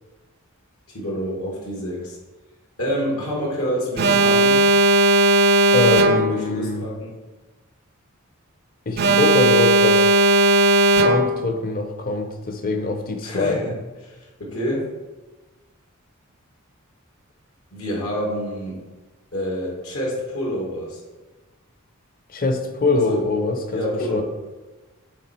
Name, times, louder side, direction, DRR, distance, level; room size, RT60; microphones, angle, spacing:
voice 1, 0.9-2.2 2.8-4.6 5.9-7.1 13.2-13.8 14.1-14.9 17.7-18.8 19.3-21.0 23.0-23.2 23.7-24.2, equal, 80° left, -3 dB, 2.2 m, -27 dB
Alarm, 4.0-6.5 9.0-11.5, right 1 dB, 45° right, 0.5 m, -16 dB
voice 2, 5.7-6.8 8.9-10.1 11.0-13.6 22.3-23.8 24.1-24.2, left 3 dB, 40° left, 6 dB, 0.8 m, -23 dB
8.2 x 3.7 x 4.5 m, 1.2 s
head